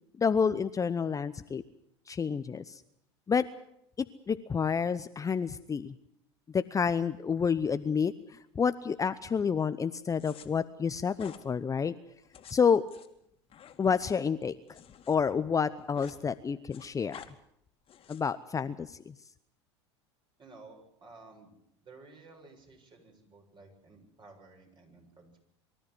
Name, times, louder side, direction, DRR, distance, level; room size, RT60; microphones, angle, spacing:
voice 1, 0.2-1.6 2.1-2.8 3.3-3.5 4.3-5.9 6.5-11.9 12.5-12.8 13.8-14.6 15.1-17.2 18.1-19.1, left 6 dB, 25° left, 12 dB, 0.8 m, -29 dB
sound 1, 10.2-10.5 11.1-11.4 12.2-15.2 15.5-16.2 16.5-17.3 17.9-18.3, left 9 dB, 40° left, 2.4 m, -51 dB
voice 2, 20.4-21.5 21.8-25.4, right 3 dB, 35° right, 3 dB, 7.3 m, -54 dB
24.5 x 13.5 x 9.6 m, 0.75 s
hypercardioid pair, 85°, 15 cm